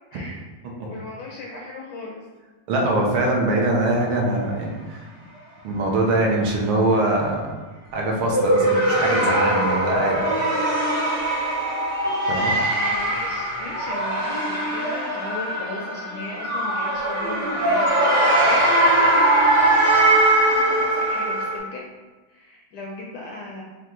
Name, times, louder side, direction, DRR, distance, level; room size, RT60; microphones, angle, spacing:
voice 1, 0.8-2.2 12.7-21.8 22.3-23.6, left 2 dB, 75° left, -3 dB, 1.0 m, -36 dB
voice 2, 2.7-5.1 5.6-7.4 7.9-10.2 12.3-12.6, right 2 dB, 75° right, -1 dB, 1.6 m, -22 dB
sound 1, 8.2-21.6, right 1 dB, 55° right, 1.5 m, -21 dB
4.4 x 2.4 x 3.6 m, 1.2 s
omnidirectional pair, 2.3 m